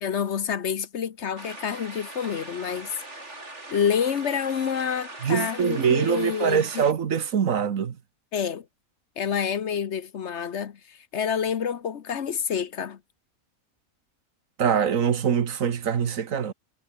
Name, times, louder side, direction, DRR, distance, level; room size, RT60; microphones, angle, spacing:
voice 1, 0.0-2.9 3.7-6.8 8.3-8.6 9.2-13.0, left 7 dB, 60° left, 1.2 m, -28 dB
sound 1, 1.4-6.9, right 2 dB, 55° right, 5.4 m, -41 dB
voice 2, 5.2-8.0 14.6-16.5, right 7 dB, 70° right, 1.6 m, -24 dB
omnidirectional pair, 1.4 m